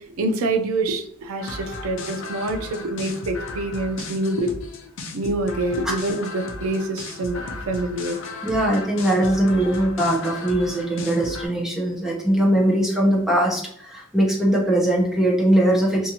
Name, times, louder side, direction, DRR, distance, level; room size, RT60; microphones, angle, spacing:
voice 1, 0.2-4.5 5.1-8.2, right 2 dB, 80° right, 6 dB, 0.4 m, -26 dB
sound 1, 1.4-11.5, left 3 dB, 60° left, 0.5 m, -35 dB
voice 2, 8.4-16.1, right 1 dB, ahead, -4 dB, 0.7 m, -20 dB
2.7 x 2.5 x 2.7 m, 0.64 s
head